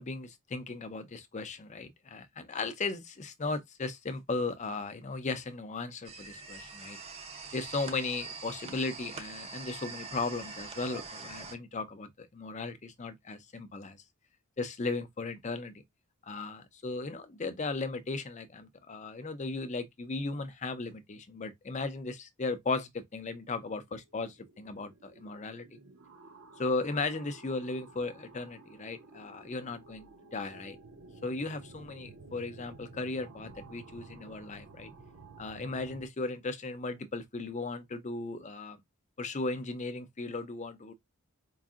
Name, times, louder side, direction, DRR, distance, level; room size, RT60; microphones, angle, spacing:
voice 1, 0.0-7.0 7.5-14.0 14.6-15.8 16.3-25.8 26.6-30.8 31.2-34.9 35.4-38.8 39.2-40.9, left 3 dB, 30° left, 0.5 m, -36 dB
sound 1, 6.0-11.6, right 4 dB, 25° right, 0.6 m, -44 dB
sound 2, 24.1-36.1, right 3 dB, 65° right, 0.7 m, -53 dB
4.6 x 2.6 x 2.4 m
head